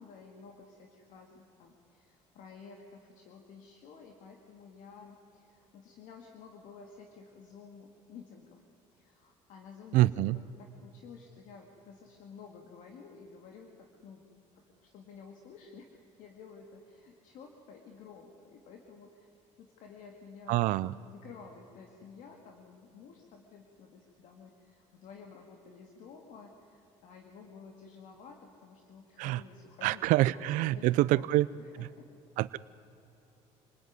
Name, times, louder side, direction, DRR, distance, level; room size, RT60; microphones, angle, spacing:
voice 1, 0.0-8.6 8.9-14.3 14.8-19.3 19.6-30.0 30.6-31.3 31.6-32.1, left 5 dB, 75° left, 2 dB, 2.3 m, -52 dB
voice 2, 9.9-10.4 20.5-20.9 29.2-29.4 29.8-31.5 31.8-31.9 32.4-32.6, right 16 dB, 80° right, 16 dB, 0.5 m, -26 dB
26.0 x 19.5 x 9.6 m, 2.9 s
cardioid pair, 115°, 13 cm